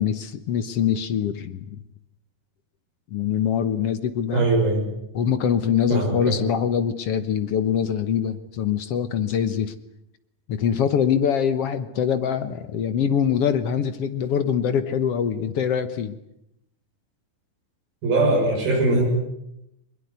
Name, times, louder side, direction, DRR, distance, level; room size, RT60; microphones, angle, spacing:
voice 1, 0.0-1.7 3.1-4.5 5.1-9.7 10.5-16.2, left 8 dB, 65° left, 11 dB, 1.5 m, -23 dB
voice 2, 4.3-4.9 5.9-6.4 18.0-19.1, right 2 dB, 85° right, -1 dB, 8.2 m, -21 dB
22.0 x 21.0 x 9.6 m, 0.82 s
omnidirectional pair, 4.1 m